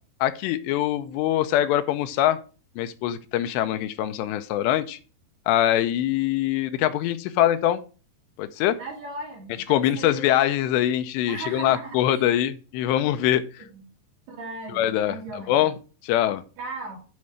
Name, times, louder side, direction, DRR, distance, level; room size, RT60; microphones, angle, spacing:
voice 1, 0.2-2.4 2.8-5.0 5.5-7.8 8.4-8.8 9.7-13.6 14.7-15.7 16.0-16.4, left 12 dB, 85° left, 10 dB, 2.8 m, -23 dB
voice 2, 8.8-10.2 11.3-12.2 13.6-13.8 14.3-15.7 16.6-17.0, right 3 dB, 65° right, -2 dB, 4.5 m, -37 dB
9.6 x 4.3 x 4.9 m, 0.36 s
omnidirectional pair, 5.0 m